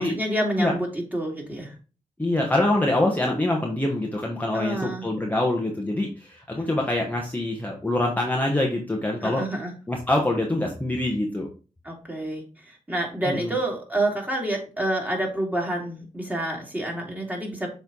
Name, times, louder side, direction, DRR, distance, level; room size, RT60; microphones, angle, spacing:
voice 1, 0.0-1.7 4.5-5.0 9.2-9.7 11.8-17.7, right 1 dB, 10° right, -1 dB, 2.5 m, -28 dB
voice 2, 2.2-9.4 9.9-11.5 13.3-13.5, left 1 dB, 10° left, 0 dB, 1.2 m, -25 dB
7.0 x 3.4 x 4.0 m, 0.35 s
cardioid pair, 70°, 14 cm